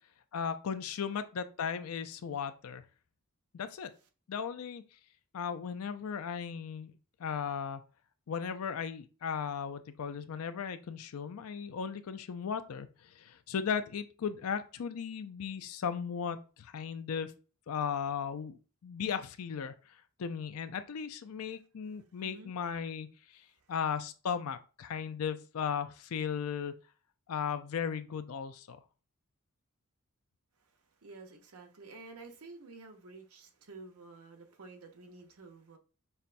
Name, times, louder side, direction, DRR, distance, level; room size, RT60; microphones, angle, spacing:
voice 1, 0.3-2.8 3.5-3.9 4.3-4.8 5.3-6.9 7.2-7.8 8.3-12.9 13.2-17.3 17.7-19.7 20.2-23.1 23.7-26.7 27.3-28.8, left 7 dB, 75° left, 0.4 m, -36 dB
voice 2, 22.2-22.5 23.5-23.7 30.6-35.8, right 3 dB, 80° right, 0.8 m, -51 dB
5.5 x 2.2 x 2.5 m
head